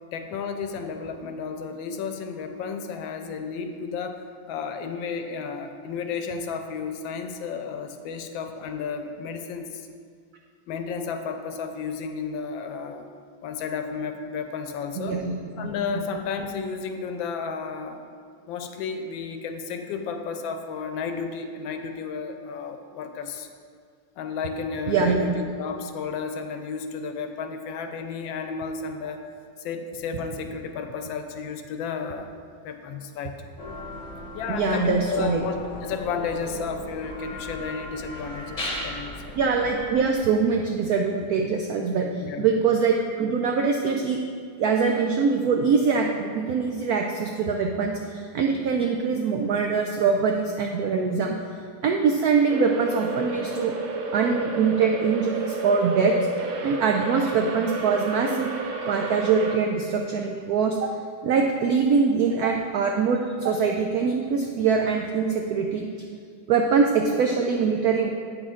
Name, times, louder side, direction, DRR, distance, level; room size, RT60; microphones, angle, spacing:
voice 1, 0.1-4.2 4.5-9.9 10.7-13.0 13.4-15.2 15.6-18.0 18.5-23.5 24.2-29.2 29.6-32.3 32.6-33.4 34.3-39.4 42.2-42.5, left 5 dB, 80° left, 6 dB, 1.3 m, -32 dB
voice 2, 15.0-15.7 24.9-25.4 34.5-35.4 39.4-44.2 44.6-51.4 51.8-53.7 54.1-56.2 56.6-58.5 58.8-60.9 61.2-65.9 66.5-68.1, right 5 dB, 85° right, 2 dB, 0.8 m, -23 dB
sound 1, 33.6-39.8, left 1 dB, 30° left, 0.9 m, -37 dB
sound 2, 52.5-59.6, right 3 dB, 65° right, 0.9 m, -31 dB
8.3 x 6.3 x 3.7 m, 2.2 s
omnidirectional pair, 2.2 m